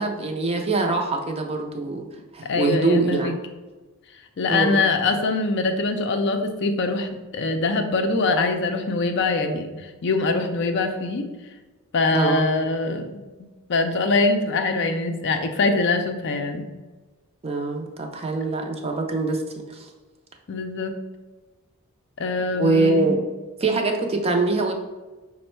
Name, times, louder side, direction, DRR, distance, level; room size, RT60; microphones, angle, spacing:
voice 1, 0.0-2.1 2.3-3.3 4.5-4.9 12.1-12.5 17.4-19.4 19.7-19.9 22.6-23.2 23.6-24.7, right 3 dB, 25° right, 2 dB, 0.5 m, -23 dB
voice 2, 2.5-3.3 4.4-11.2 11.9-13.1 13.7-16.6 20.5-20.9 22.2-23.1, left 3 dB, 55° left, 5 dB, 0.4 m, -23 dB
5.2 x 2.1 x 4.3 m, 1.2 s
head